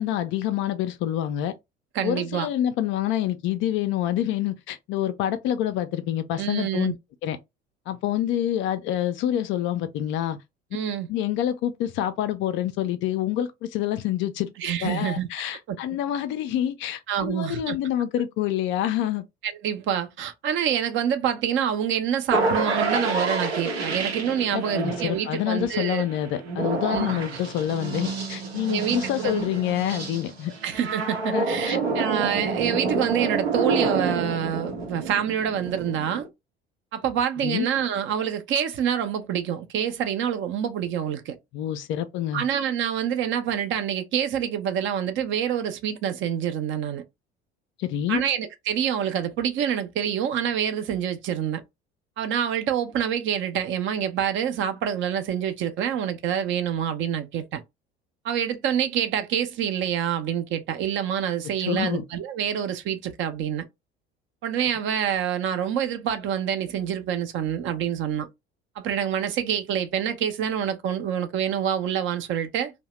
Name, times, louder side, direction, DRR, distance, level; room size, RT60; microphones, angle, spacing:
voice 1, 0.0-1.5 2.0-6.9 7.2-7.4 7.9-10.4 11.1-19.2 24.5-30.5 31.3-31.8 37.4-37.7 41.5-42.4 47.8-48.3 61.6-62.0, left 11 dB, 40° left, 0.4 m, -27 dB
voice 2, 1.9-2.5 6.4-6.9 10.7-11.1 14.6-15.3 15.7-15.8 17.1-17.8 19.4-26.0 26.9-27.2 28.7-29.5 30.6-36.3 36.9-41.4 42.3-47.0 48.1-51.6 52.2-57.6 58.2-63.6 64.4-68.3 68.8-72.7, right 9 dB, 40° right, 0.5 m, -27 dB
sound 1, 22.3-36.3, right 3 dB, 80° right, 0.8 m, -28 dB
2.7 x 2.1 x 3.0 m
figure-of-eight pair, 60°, 31 cm